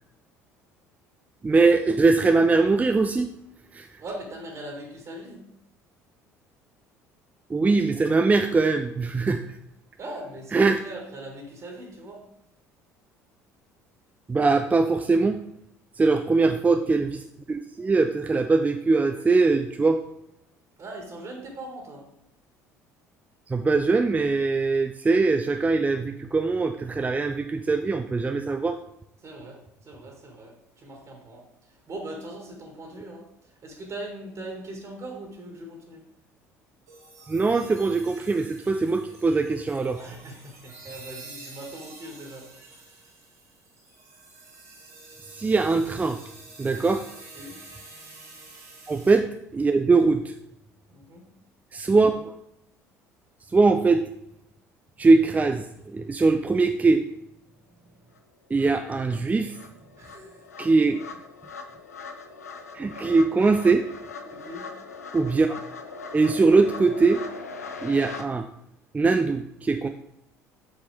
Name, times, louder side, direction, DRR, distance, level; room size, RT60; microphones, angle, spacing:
voice 1, 1.4-3.3 3.7-3.9 7.5-9.4 10.5-10.8 14.3-15.4 16.0-20.0 23.5-28.8 37.3-40.0 45.3-46.2 46.6-47.0 48.9-50.3 51.7-52.2 53.5-54.0 55.0-55.6 55.9-57.0 58.5-59.6 60.6-61.0 62.7-63.8 65.1-65.6 66.1-67.2 67.8-68.5 68.9-69.9, right 3 dB, 20° right, 6 dB, 0.5 m, -21 dB
voice 2, 4.0-5.4 10.0-12.2 16.2-16.3 20.8-22.1 29.2-36.0 40.0-43.0 46.7-47.0 47.3-47.6 50.9-51.3 60.0-60.4 64.3-64.7, right 1 dB, 40° right, 1 dB, 1.9 m, -40 dB
sound 1, 36.9-49.2, right 3 dB, 80° right, 2.3 m, -48 dB
sound 2, 58.1-58.2 58.6-68.2, left 4 dB, 85° left, 0.5 m, -40 dB
7.1 x 6.1 x 3.4 m, 0.78 s
figure-of-eight pair, 60°, 8 cm